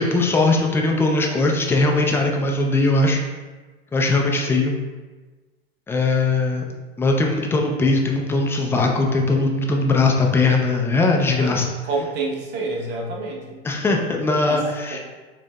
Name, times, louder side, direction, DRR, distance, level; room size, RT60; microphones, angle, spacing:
voice 1, 0.0-3.2 3.9-4.8 5.9-6.6 7.0-11.7 13.6-15.0, left 3 dB, 10° left, 1 dB, 0.3 m, -20 dB
voice 2, 11.8-13.6 14.5-14.6 14.9-15.0, right 3 dB, 35° right, -1 dB, 0.9 m, -28 dB
6.5 x 2.6 x 2.2 m, 1.3 s
figure-of-eight pair, 90°, 31 cm